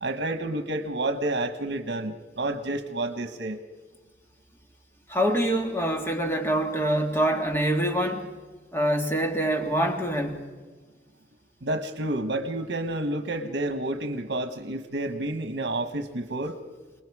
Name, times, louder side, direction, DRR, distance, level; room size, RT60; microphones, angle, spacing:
voice 1, 0.0-3.6 11.6-16.6, right 1 dB, 80° right, 7 dB, 1.2 m, -30 dB
voice 2, 5.1-8.3 8.7-10.4, right 1 dB, 15° left, 3 dB, 1.8 m, -25 dB
28.5 x 20.0 x 4.8 m, 1.4 s
head